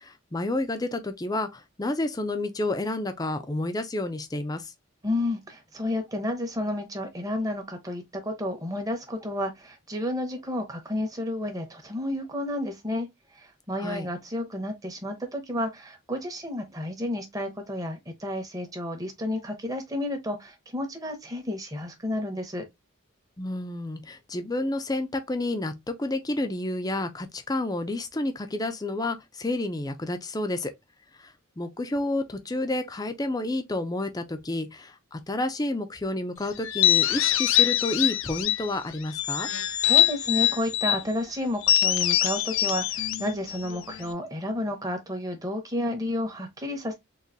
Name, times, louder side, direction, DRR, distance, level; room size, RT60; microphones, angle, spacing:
voice 1, 0.0-4.7 13.8-14.1 23.4-30.7 31.2-39.5, left 2 dB, 20° left, 0.5 m, -30 dB
voice 2, 5.0-13.1 13.3-22.7 39.8-46.9, left 1 dB, 15° right, 0.9 m, -31 dB
sound 1, 36.6-38.7 39.1-41.0 41.6-44.1, left 11 dB, 70° left, 0.4 m, -24 dB
3.9 x 2.6 x 2.6 m
head